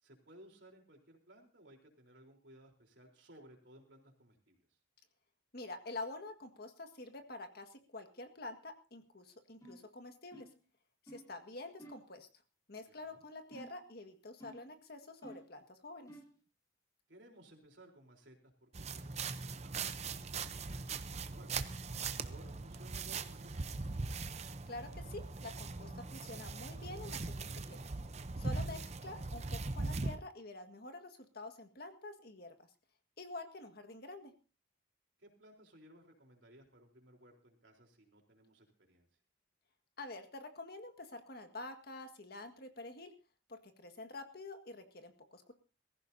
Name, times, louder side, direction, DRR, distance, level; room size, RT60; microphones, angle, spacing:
voice 1, 0.0-4.8 12.9-13.2 17.1-21.5 22.1-23.5 23.8-24.1 28.5-28.8 35.2-39.1, right 1 dB, 65° right, 2 dB, 3.9 m, -60 dB
voice 2, 5.5-10.5 11.1-12.3 12.7-16.1 24.7-27.9 28.4-32.7 33.2-34.3 40.0-43.1 43.5-45.5, left 2 dB, 55° left, 6 dB, 1.8 m, -48 dB
sound 1, 9.6-9.9 10.3-10.6 11.1-11.3 11.8-12.1 13.5-13.9 14.4-14.8 15.2-15.6 16.1-16.4, right 1 dB, 20° left, 3.1 m, -54 dB
sound 2, 18.7-30.2, right 3 dB, 35° right, 0.7 m, -40 dB
22.0 x 15.0 x 2.8 m, 0.34 s
head